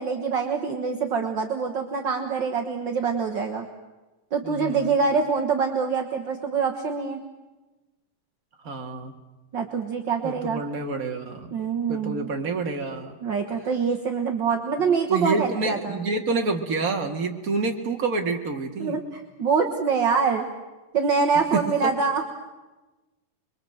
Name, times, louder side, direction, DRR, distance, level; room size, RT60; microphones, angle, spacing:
voice 1, 0.0-3.7 4.3-7.2 9.5-10.6 11.5-12.3 13.2-16.0 18.8-20.5 20.9-22.2, right 5 dB, 55° right, 3 dB, 1.3 m, -25 dB
voice 2, 4.4-5.0 8.6-9.1 10.2-11.6 11.9-13.2 15.1-19.0 21.5-21.9, right 3 dB, 30° right, 3 dB, 1.8 m, -28 dB
27.0 x 22.5 x 7.8 m, 1.1 s
omnidirectional pair, 3.9 m